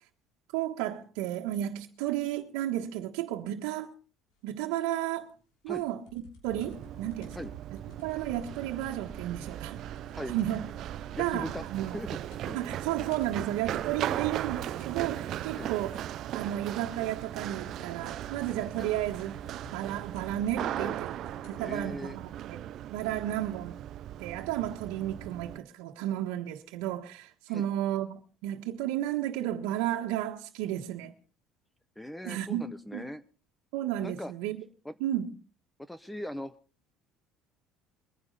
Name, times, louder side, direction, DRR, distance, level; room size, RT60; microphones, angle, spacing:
voice 1, 0.5-3.9 4.4-5.3 5.6-7.4 8.0-9.8 10.3-10.7 11.2-12.0 12.5-16.0 16.3-19.4 19.7-21.1 21.5-22.6 22.9-23.8 24.2-31.1 32.2-33.1 33.7-34.6 35.0-35.3, right 12 dB, 85° right, 1.5 m, -33 dB
sound 1, 5.7-10.7 10.9-11.0 11.3-11.7 12.0-12.5 12.8-21.6 22.4-22.5, left 3 dB, 90° left, 6.3 m, -54 dB
Run, 6.5-25.6, right 12 dB, 50° right, 0.6 m, -38 dB
voice 2, 11.2-11.7 11.9-12.2 12.4-12.6 14.1-14.2 15.5-15.7 18.8-18.9 20.8-21.0 21.6-22.2 27.5-27.7 32.0-33.2 34.0-34.3 34.8-34.9 35.8-36.5, left 1 dB, 5° left, 0.6 m, -39 dB
23.5 x 10.0 x 4.1 m
cardioid pair, 150°, 0 cm